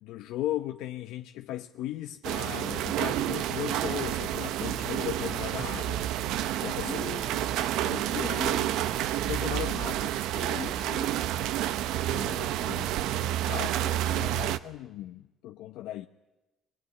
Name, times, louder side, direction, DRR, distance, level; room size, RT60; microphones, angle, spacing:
voice 1, 0.0-6.0 6.4-7.0 7.5-8.8 9.2-9.9 12.1-12.9 13.4-13.7 14.2-16.1, left 14 dB, 90° left, 0.9 m, -37 dB
sound 1, 2.2-14.6, right 12 dB, 80° right, 0.9 m, -29 dB
voice 2, 6.8-7.5 9.7-11.1 13.5-14.4, left 8 dB, 55° left, 2.4 m, -43 dB
25.0 x 20.0 x 9.8 m
cardioid pair, 150°, 0 cm